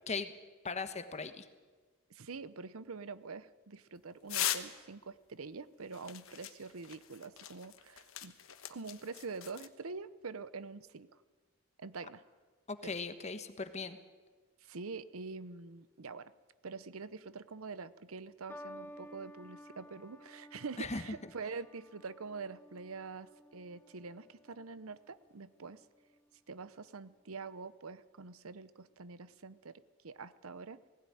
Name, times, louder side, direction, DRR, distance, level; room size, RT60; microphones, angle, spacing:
voice 1, 0.6-1.5 12.7-14.0 20.8-21.0, left 4 dB, 35° left, 10 dB, 1.3 m, -38 dB
voice 2, 2.1-8.3 8.7-11.1 11.8-12.2 12.8-13.0 14.6-16.3 16.6-25.9 26.5-29.7 30.0-30.8, right 4 dB, 80° right, 16 dB, 0.8 m, -45 dB
sound 1, 4.3-4.8 5.9-9.7, left 11 dB, 70° left, 1.3 m, -40 dB
sound 2, 18.5-25.0 25.9-26.3, equal, 10° left, 0.7 m, -54 dB
18.0 x 16.5 x 10.0 m, 1.4 s
head